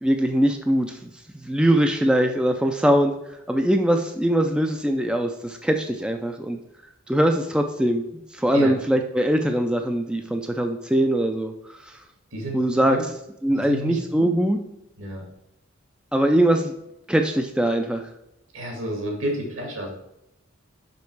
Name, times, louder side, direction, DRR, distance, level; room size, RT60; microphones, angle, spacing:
voice 1, 0.0-3.2 3.5-6.6 7.1-8.0 8.3-12.0 12.5-13.0 13.4-14.6 16.1-16.7 17.1-18.0, right 1 dB, 5° right, 5 dB, 0.3 m, -22 dB
voice 2, 12.3-13.0 13.5-14.3 15.0-15.3 18.5-19.9, right 1 dB, 70° right, 1 dB, 2.0 m, -31 dB
5.6 x 5.2 x 4.6 m, 0.85 s
head